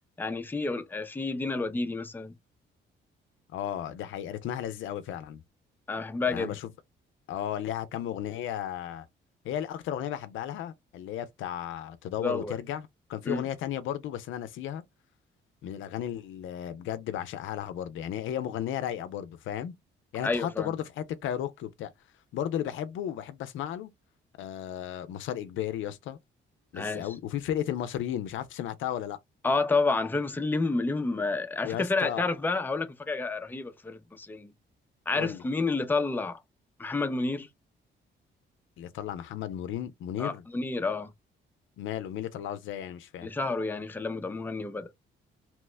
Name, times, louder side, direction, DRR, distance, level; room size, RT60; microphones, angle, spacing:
voice 1, 0.2-2.3 5.9-6.6 12.2-12.6 13.2-13.4 20.2-20.7 26.7-27.1 29.4-34.5 35.1-36.4 36.8-37.5 40.2-41.1 43.2-44.9, left 3 dB, 10° left, 0.5 m, -29 dB
voice 2, 3.5-5.4 6.3-6.7 7.3-9.1 9.4-14.8 15.6-19.7 20.1-21.9 22.3-23.9 24.4-26.2 26.7-29.2 31.6-32.3 35.2-35.4 38.8-40.4 41.8-43.3, left 10 dB, 80° left, 0.5 m, -34 dB
2.9 x 2.1 x 3.2 m
cardioid pair, 90°, 20 cm